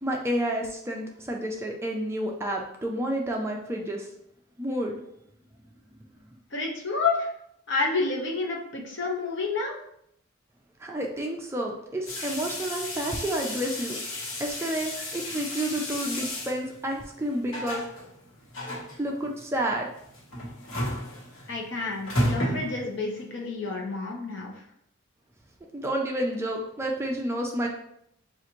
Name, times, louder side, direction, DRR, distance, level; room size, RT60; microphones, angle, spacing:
voice 1, 0.0-4.1 4.6-5.0 10.8-14.0 14.4-17.8 19.0-19.9 25.7-27.7, right 1 dB, 10° right, 0 dB, 0.4 m, -30 dB
voice 2, 6.5-7.3 7.7-9.8 21.5-24.5, left 3 dB, 60° left, -1 dB, 0.9 m, -29 dB
sound 1, 12.1-23.2, left 1 dB, 80° left, 1.2 m, -33 dB
6.0 x 2.5 x 2.9 m, 0.74 s
head